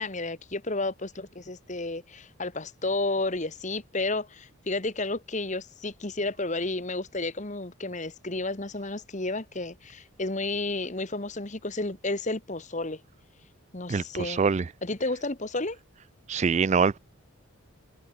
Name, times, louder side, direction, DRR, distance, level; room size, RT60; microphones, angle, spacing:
voice 1, 0.0-13.0 13.7-14.4 14.8-15.8, left 2 dB, 35° left, 1.4 m, -32 dB
voice 2, 13.9-14.6 16.3-17.0, right 5 dB, 30° right, 0.3 m, -24 dB
head